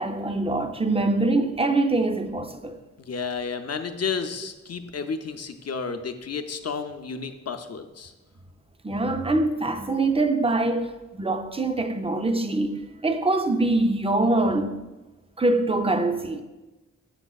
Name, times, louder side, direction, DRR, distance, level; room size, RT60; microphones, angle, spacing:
voice 1, 0.0-2.8 8.8-14.8 15.4-16.4, right 2 dB, 20° right, 0.4 m, -24 dB
voice 2, 3.0-8.1, left 5 dB, 55° left, 0.5 m, -32 dB
7.1 x 5.9 x 2.3 m
wide cardioid pair, 55°, 31 cm